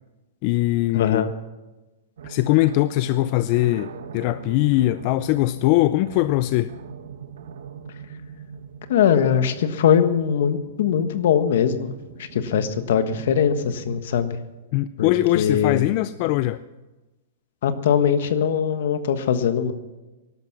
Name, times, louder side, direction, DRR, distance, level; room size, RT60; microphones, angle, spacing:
voice 1, 0.4-1.3 2.2-6.7 14.7-16.6, left 17 dB, 45° left, 14 dB, 0.4 m, -21 dB
voice 2, 0.9-1.3 8.9-11.9 12.2-14.4 15.0-15.9 17.6-19.7, left 8 dB, 70° left, 10 dB, 1.4 m, -21 dB
sound 1, 2.2-14.0, right 6 dB, 80° right, 1.5 m, -41 dB
18.0 x 12.0 x 6.1 m, 1.1 s
hypercardioid pair, 145°, 0 cm